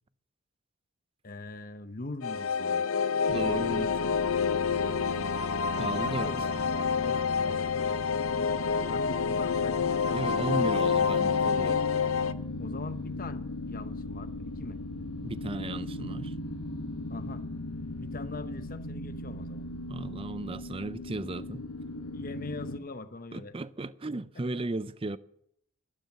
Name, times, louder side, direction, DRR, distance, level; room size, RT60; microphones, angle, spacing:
voice 1, 1.2-2.9 6.0-6.6 6.9-10.7 12.6-14.8 17.1-17.4 18.0-19.7 22.1-23.6 24.6-24.7, left 2 dB, 40° left, 0.8 m, -42 dB
sound 1, 2.2-12.3, left 6 dB, 65° left, 0.6 m, -28 dB
sound 2, 3.3-22.8, left 1 dB, 90° left, 1.1 m, -38 dB
voice 2, 3.3-4.0 5.8-6.3 9.3-9.4 10.1-11.8 15.2-16.3 19.9-21.7 23.3-25.2, right 2 dB, 25° right, 0.4 m, -35 dB
12.5 x 12.0 x 6.9 m
head